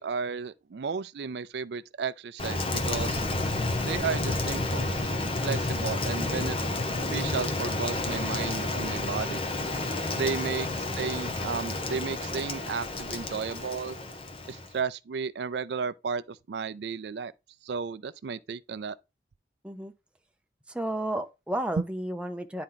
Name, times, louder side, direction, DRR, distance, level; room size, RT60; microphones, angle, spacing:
voice 1, 0.0-3.2 3.8-4.9 5.4-6.6 7.1-9.4 10.1-14.0 14.5-17.3 17.6-19.0, right 5 dB, 75° right, 0.4 m, -33 dB
Rain, 2.4-14.8, left 2 dB, 30° left, 0.9 m, -30 dB
voice 2, 10.3-10.6 19.6-19.9 20.7-22.6, right 1 dB, 5° right, 0.6 m, -33 dB
10.0 x 4.3 x 3.9 m
head